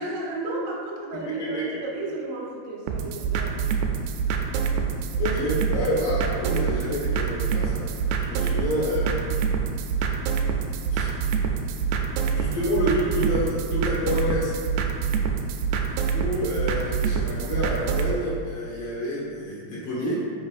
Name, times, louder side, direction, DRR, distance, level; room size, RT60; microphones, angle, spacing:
voice 1, 0.0-4.0, right 2 dB, 70° right, -2 dB, 2.6 m, -34 dB
voice 2, 1.1-1.8 5.2-9.3 10.9-11.1 12.3-14.6 16.1-20.2, equal, 90° left, -7 dB, 1.3 m, -28 dB
sound 1, 2.9-18.1, right 6 dB, 90° right, 2.8 m, -26 dB
8.8 x 6.4 x 2.5 m, 2.1 s
omnidirectional pair, 4.9 m